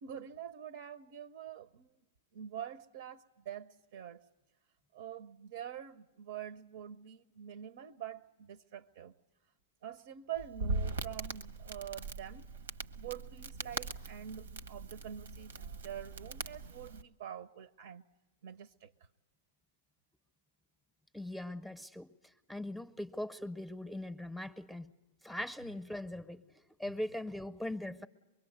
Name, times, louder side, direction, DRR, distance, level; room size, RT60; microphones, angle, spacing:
voice 1, 0.0-1.9 2.3-4.2 4.9-9.1 9.8-12.5 13.0-18.0 18.4-18.9, right 10 dB, 65° right, 13 dB, 0.7 m, -45 dB
Crackle, 10.4-17.0, right 3 dB, 90° right, 1.0 m, -41 dB
voice 2, 21.1-22.1 22.5-24.9 25.2-26.4 26.8-28.1, left 1 dB, 5° left, 10 dB, 0.7 m, -40 dB
24.0 x 22.5 x 8.0 m, 1.1 s
hypercardioid pair, 130°, 0 cm